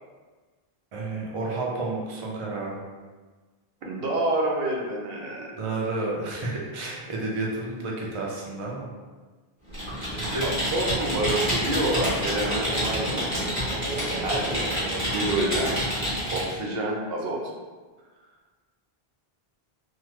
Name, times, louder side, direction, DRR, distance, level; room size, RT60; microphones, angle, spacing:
voice 1, 0.9-2.8 5.6-8.9 10.1-10.4, right 2 dB, 40° right, -3 dB, 0.4 m, -31 dB
voice 2, 3.8-5.5 10.4-13.5 14.2-14.7 15.1-15.8 16.3-17.4, right 1 dB, 70° right, -2 dB, 0.8 m, -28 dB
Computer keyboard, 9.7-16.5, equal, 15° right, 1.0 m, -28 dB
3.1 x 2.0 x 3.0 m, 1.4 s
omnidirectional pair, 1.0 m